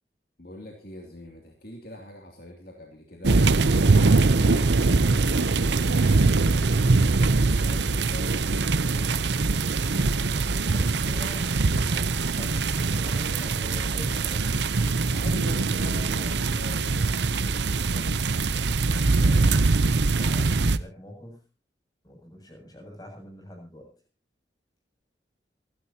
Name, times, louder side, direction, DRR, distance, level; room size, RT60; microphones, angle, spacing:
voice 1, 0.4-3.4 4.0-5.8 7.6-9.1 15.0-18.3, equal, 55° left, 1 dB, 2.8 m, -44 dB
sound 1, 3.2-20.8, right 3 dB, 80° right, 0.8 m, -22 dB
voice 2, 7.6-8.3 10.5-14.6 19.2-21.4 22.0-23.9, left 1 dB, 20° left, 2 dB, 7.6 m, -44 dB
27.5 x 12.5 x 2.9 m, 0.32 s
head